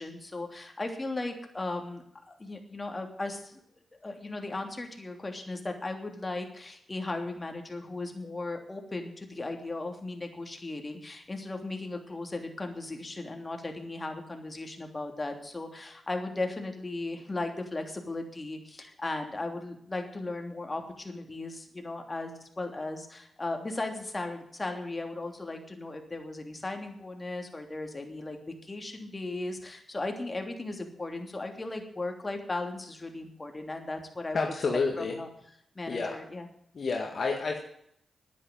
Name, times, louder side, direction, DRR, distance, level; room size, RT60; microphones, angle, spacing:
voice 1, 0.0-3.6 4.0-34.4 35.0-35.3 35.7-36.5, left 2 dB, 30° left, 4 dB, 3.1 m, -37 dB
voice 2, 34.3-35.2 35.9-36.2 36.7-37.6, left 4 dB, 60° left, 2 dB, 1.8 m, -29 dB
10.0 x 9.7 x 9.3 m, 0.72 s
supercardioid pair, 40°, 0 cm